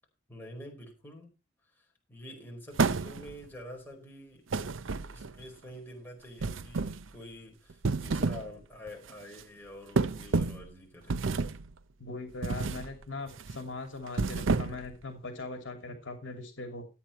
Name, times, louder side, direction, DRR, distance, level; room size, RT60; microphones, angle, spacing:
voice 1, 0.3-1.3 1.7-4.4 5.1-11.3, equal, 10° left, 0 dB, 4.8 m, -47 dB
sound 1, 2.8-3.4 4.5-5.4 6.4-7.1 7.7-8.5 8.9-9.1 10.0-10.7 11.1-11.7 12.4-12.9 13.3-13.6 14.1-14.9, right 4 dB, 75° right, 0.6 m, -30 dB
voice 2, 12.0-16.9, left 3 dB, 65° left, 5 dB, 2.8 m, -40 dB
13.5 x 9.0 x 4.4 m, 0.30 s
head